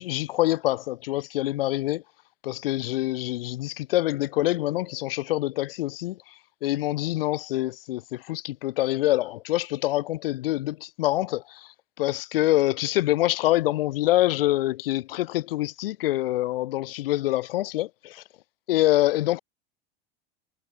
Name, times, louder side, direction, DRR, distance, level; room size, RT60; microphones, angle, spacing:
voice 1, 0.0-2.0 2.4-6.2 6.6-11.7 12.0-18.2 18.7-19.4, left 16 dB, 75° left, 0.7 m, -25 dB
hypercardioid pair, 95°, 29 cm